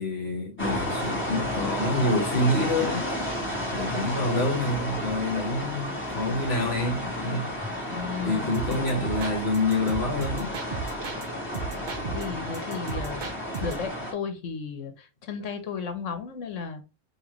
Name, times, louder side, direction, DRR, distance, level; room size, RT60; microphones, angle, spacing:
voice 1, 0.0-3.1 3.7-7.5 8.2-10.5, left 2 dB, 55° left, 1.5 m, -27 dB
sound 1, 0.6-14.1, left 1 dB, 10° left, 1.8 m, -32 dB
voice 2, 7.9-9.0 12.1-13.3 13.6-16.8, left 6 dB, 75° left, 1.3 m, -34 dB
sound 2, 8.5-11.3 11.5-13.9, right 5 dB, 45° right, 0.8 m, -35 dB
5.6 x 3.0 x 3.0 m
omnidirectional pair, 1.3 m